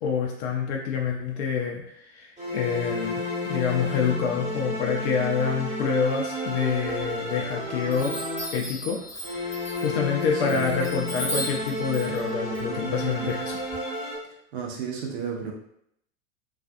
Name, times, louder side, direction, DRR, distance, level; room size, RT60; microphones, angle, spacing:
voice 1, 0.0-8.2 8.5-9.0 9.3-13.6, left 6 dB, 55° left, 0 dB, 0.5 m, -27 dB
sound 1, 2.4-8.8 9.2-14.2, left 1 dB, 15° right, 1.1 m, -32 dB
Chime, 7.1-7.5 7.9-13.8, equal, 5° left, 0.6 m, -37 dB
voice 2, 14.2-15.5, right 7 dB, 55° right, 0 dB, 0.8 m, -33 dB
2.4 x 2.3 x 2.5 m, 0.72 s
figure-of-eight pair, 85°, 39 cm